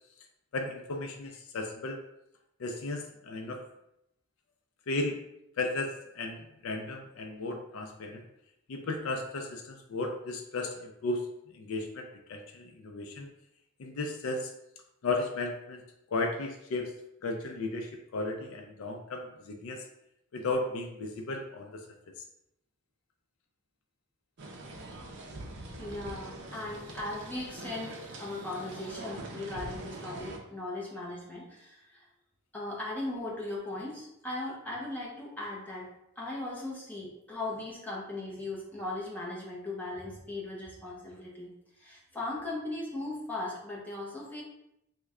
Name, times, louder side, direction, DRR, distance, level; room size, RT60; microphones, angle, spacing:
voice 1, 0.5-2.0 2.6-3.6 4.9-5.3 5.6-8.3 8.7-13.3 13.8-14.5 15.0-19.9 20.3-22.2, left 2 dB, 65° left, 4 dB, 0.4 m, -35 dB
sound 1, 24.4-30.4, right 2 dB, 55° right, 0.5 m, -43 dB
voice 2, 25.8-32.0 32.5-35.9 36.2-41.5 41.8-44.4, left 2 dB, 10° left, -5 dB, 0.7 m, -38 dB
3.1 x 2.1 x 3.6 m, 0.82 s
head